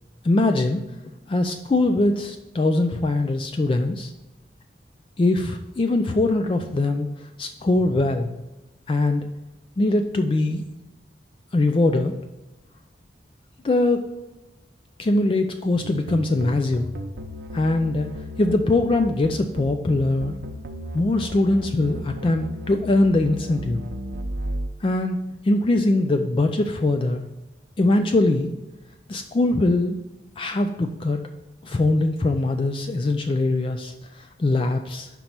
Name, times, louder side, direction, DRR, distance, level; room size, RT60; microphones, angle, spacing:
voice 1, 0.2-0.8 1.3-4.1 5.2-8.3 8.9-9.3 9.8-10.6 11.5-12.1 13.6-14.1 15.0-16.9 17.5-18.1 18.4-20.3 20.9-23.8 24.8-25.2 25.4-27.2 27.8-28.5 29.1-30.0 30.4-31.2 31.6-35.1, left 2 dB, 30° left, 6 dB, 0.3 m, -22 dB
sound 1, 15.8-24.7, equal, 85° right, 0.7 m, -34 dB
5.3 x 4.5 x 5.8 m, 0.99 s
head